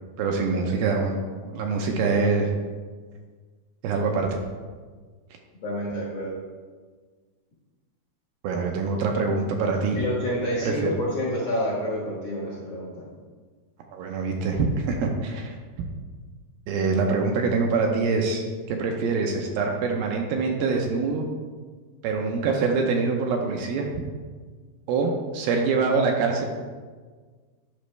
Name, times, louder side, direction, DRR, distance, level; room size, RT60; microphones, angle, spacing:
voice 1, 0.2-1.2 1.5-2.5 3.8-4.3 8.4-10.0 10.6-10.9 13.9-15.5 16.7-21.2 22.0-23.9 24.9-26.5, right 4 dB, 75° right, 2 dB, 2.4 m, -24 dB
voice 2, 5.6-6.3 9.9-13.1, equal, 60° left, -6 dB, 1.6 m, -28 dB
10.5 x 5.6 x 3.3 m, 1.5 s
omnidirectional pair, 4.6 m